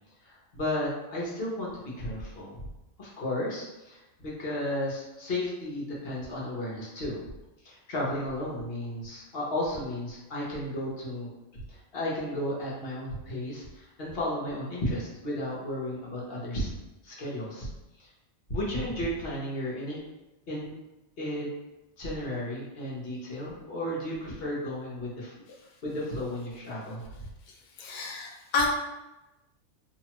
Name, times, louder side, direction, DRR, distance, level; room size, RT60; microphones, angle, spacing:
voice 1, 0.2-1.7 2.0-2.5 3.0-7.2 7.6-16.7 17.0-17.7 18.0-18.1 18.5-20.0 20.5-20.7 21.2-21.5 22.0-25.3 25.8-27.0, left 1 dB, 50° left, -5 dB, 1.0 m, -33 dB
voice 2, 27.8-28.7, left 4 dB, 80° left, -1 dB, 0.4 m, -29 dB
2.9 x 2.3 x 2.9 m, 1.0 s
omnidirectional pair, 1.4 m